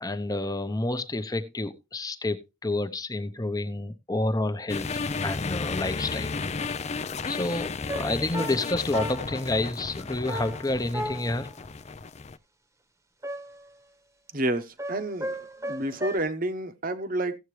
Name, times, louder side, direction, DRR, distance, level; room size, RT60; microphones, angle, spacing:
voice 1, 0.0-6.3 7.3-11.5, left 2 dB, 20° left, 0.9 m, -29 dB
sound 1, 4.7-12.4, left 4 dB, 35° left, 0.5 m, -33 dB
sound 2, 7.9-9.5 10.3-11.5 13.2-13.8 14.8-16.2, equal, 15° right, 1.1 m, -35 dB
voice 2, 14.3-17.4, right 1 dB, 45° right, 1.1 m, -30 dB
16.0 x 8.0 x 3.2 m
head